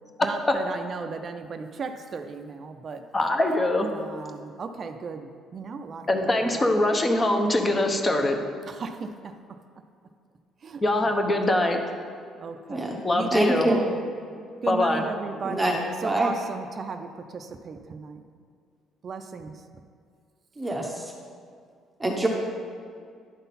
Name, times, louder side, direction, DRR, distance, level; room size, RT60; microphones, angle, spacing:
voice 1, 0.2-3.0 3.9-6.1 6.5-6.8 8.7-9.3 10.6-10.8 12.4-14.0 14.6-15.7 16.0-18.2 19.0-19.5, right 4 dB, 40° right, 6 dB, 0.4 m, -35 dB
voice 2, 3.1-3.9 6.1-8.4 10.8-11.8 13.0-13.7 14.7-15.0, left 1 dB, 20° left, 4 dB, 0.8 m, -23 dB
voice 3, 13.3-13.8 15.4-15.8 16.0-16.3 20.6-21.1 22.0-22.3, right 1 dB, 10° right, -1 dB, 0.8 m, -25 dB
10.5 x 3.9 x 4.1 m, 2.2 s
cardioid pair, 110°, 0 cm